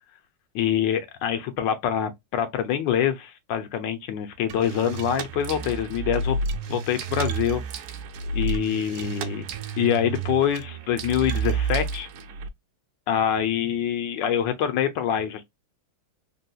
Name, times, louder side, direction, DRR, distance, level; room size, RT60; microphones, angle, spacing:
voice 1, 0.5-6.4 6.7-7.6 8.3-9.5 9.8-12.1 13.1-15.4, left 9 dB, 75° left, 1.3 m, -25 dB
sound 1, 4.5-12.5, right 4 dB, 80° right, 0.8 m, -30 dB
3.4 x 2.7 x 2.2 m
omnidirectional pair, 2.1 m